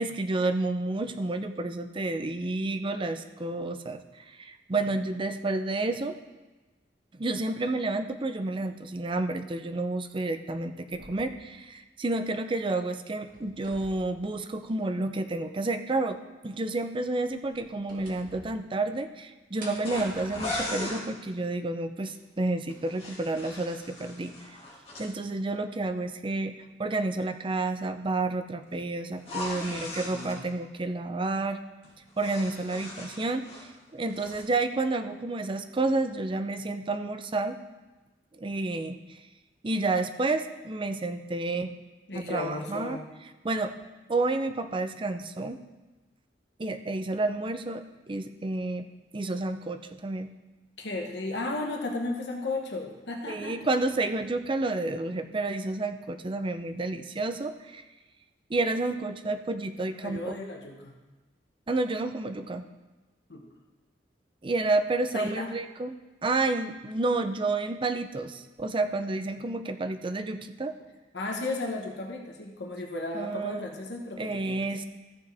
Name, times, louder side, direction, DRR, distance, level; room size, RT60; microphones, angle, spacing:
voice 1, 0.0-6.2 7.1-16.2 16.4-24.3 25.0-31.6 32.2-37.5 38.3-39.2 39.6-41.7 42.1-43.0 43.4-43.7 44.1-45.6 46.6-48.9 49.1-50.3 53.3-57.8 58.5-60.4 61.7-62.6 64.4-65.9 66.2-70.7 73.1-73.6 74.2-74.8, right 2 dB, 30° right, 8 dB, 0.5 m, -30 dB
sound 1, 10.9-12.7 13.0-15.1 15.4-15.5 17.1-19.2 19.6-21.3 22.1-22.2 23.2-23.3, right 1 dB, 50° right, 1.9 m, -51 dB
sound 2, 19.8-21.0 22.7-25.1 29.2-30.4 31.8-33.7 34.0-34.5, left 1 dB, 40° left, 3.3 m, -38 dB
voice 2, 29.7-30.4 41.5-41.6 42.1-43.1 50.8-53.6 59.9-60.9 63.3-63.4 65.1-65.5 71.1-74.7, left 2 dB, 70° left, 1 dB, 1.3 m, -35 dB
14.5 x 7.1 x 3.5 m, 1.2 s
head